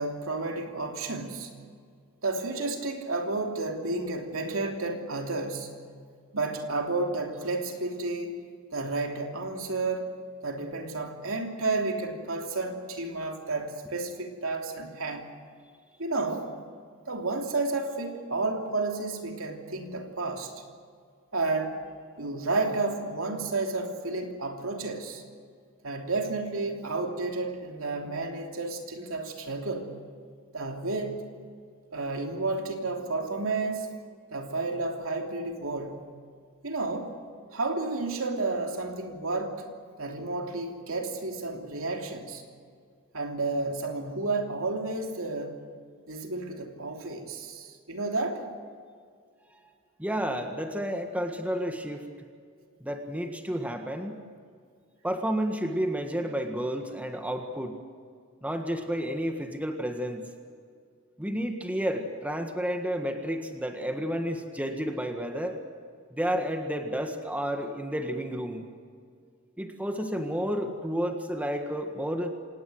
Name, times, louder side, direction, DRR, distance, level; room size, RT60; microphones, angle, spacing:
voice 1, 0.0-1.5 2.2-5.7 6.3-10.0 10.4-15.3 16.0-16.5 17.1-20.5 21.3-21.8 22.2-25.2 25.8-29.9 30.5-31.2 31.9-33.9 34.3-36.0 36.6-37.1 37.5-39.6 40.0-42.4 43.1-45.6 46.1-48.5, right 3 dB, 70° right, 3 dB, 3.1 m, -31 dB
voice 2, 50.0-52.0 52.8-54.2 55.0-57.8 58.4-60.2 61.2-65.6 66.1-68.6 69.6-72.5, equal, 5° right, 5 dB, 1.6 m, -31 dB
27.5 x 18.0 x 7.9 m, 2.1 s
head